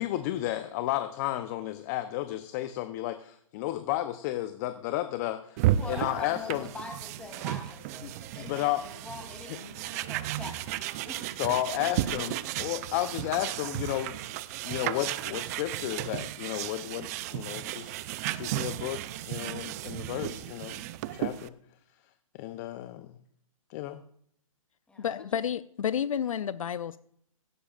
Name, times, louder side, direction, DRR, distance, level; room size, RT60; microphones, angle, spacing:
voice 1, 0.0-6.7 8.0-8.8 9.5-9.6 11.4-14.2 14.6-18.0 18.3-20.8 21.1-21.5 22.3-23.2 23.7-24.0, left 14 dB, 30° left, 10 dB, 0.7 m, -33 dB
sound 1, 5.6-21.5, right 13 dB, 30° right, 0.5 m, -34 dB
voice 2, 5.8-11.4 11.7-12.5 24.9-25.4, left 3 dB, 5° left, 2 dB, 3.1 m, -44 dB
voice 3, 25.0-27.0, left 8 dB, 70° left, 15 dB, 0.6 m, -30 dB
16.5 x 15.5 x 2.5 m, 0.66 s
hypercardioid pair, 140°, 18 cm